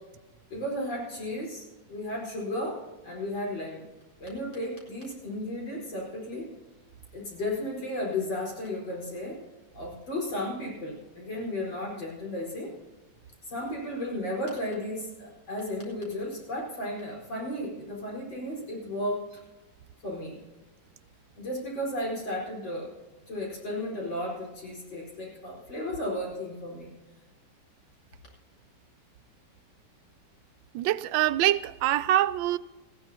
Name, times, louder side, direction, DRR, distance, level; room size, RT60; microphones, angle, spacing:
voice 1, 0.5-3.8 4.2-6.5 7.1-9.4 9.7-12.8 13.4-19.4 20.0-20.4 21.4-22.9 23.3-26.9, left 1 dB, 85° left, 5.3 m, -34 dB
voice 2, 30.7-32.6, right 13 dB, 85° right, 1.3 m, -24 dB
19.0 x 15.0 x 2.8 m
omnidirectional pair, 2.0 m